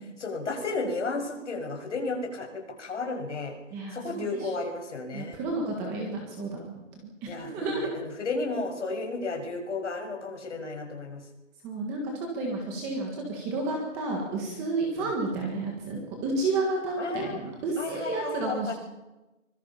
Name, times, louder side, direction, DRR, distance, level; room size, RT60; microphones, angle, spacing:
voice 1, 0.2-3.5 3.9-5.4 7.3-11.2 15.0-15.1 17.0-17.4 17.8-18.7, left 3 dB, 60° left, 3 dB, 6.5 m, -33 dB
voice 2, 3.7-4.3 5.1-6.8 7.2-7.9 11.6-18.7, right 2 dB, 5° right, 1 dB, 1.6 m, -31 dB
24.5 x 22.5 x 5.7 m, 1.0 s
hypercardioid pair, 180°, 40 cm